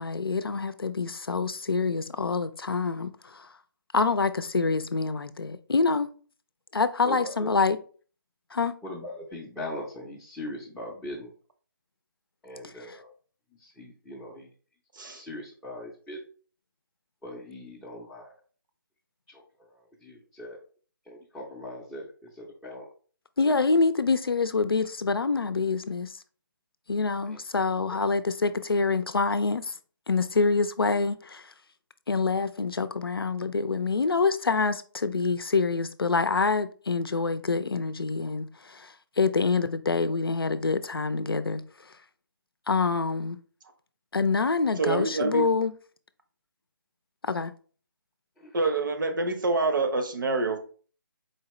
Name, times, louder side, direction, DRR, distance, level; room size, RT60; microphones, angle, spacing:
voice 1, 0.0-3.4 3.9-6.1 6.7-7.8 8.5-8.8 23.4-26.1 26.9-29.7 30.1-31.4 32.1-38.9 39.2-41.6 42.7-43.4 44.1-45.7 47.2-47.5, left 4 dB, 90° left, 0.5 m, -26 dB
voice 2, 7.0-7.5 8.8-11.3 12.4-13.1 13.5-14.5 15.0-16.2 17.2-18.4 19.3-20.6 21.1-22.9 27.2-28.2 48.4-48.6, left 1 dB, 5° left, 0.5 m, -41 dB
voice 3, 44.8-45.5 48.5-50.6, right 3 dB, 60° right, 0.9 m, -26 dB
4.4 x 2.8 x 3.0 m
figure-of-eight pair, 150°, 12 cm